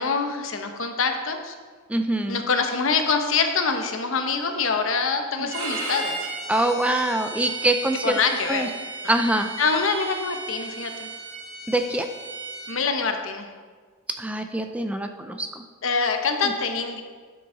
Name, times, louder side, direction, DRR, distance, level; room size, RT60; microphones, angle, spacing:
voice 1, 0.0-1.5 2.3-6.3 8.0-8.6 9.6-11.1 12.7-13.5 15.8-17.0, left 5 dB, 65° left, 5 dB, 0.9 m, -25 dB
voice 2, 1.9-2.4 5.4-5.5 6.5-8.2 8.5-8.7 9.1-9.6 11.7-12.1 14.2-15.6 16.4-16.5, right 1 dB, 5° right, 6 dB, 0.4 m, -24 dB
Bowed string instrument, 5.5-12.7, right 3 dB, 80° right, 2.4 m, -35 dB
11.5 x 6.7 x 3.9 m, 1.5 s
head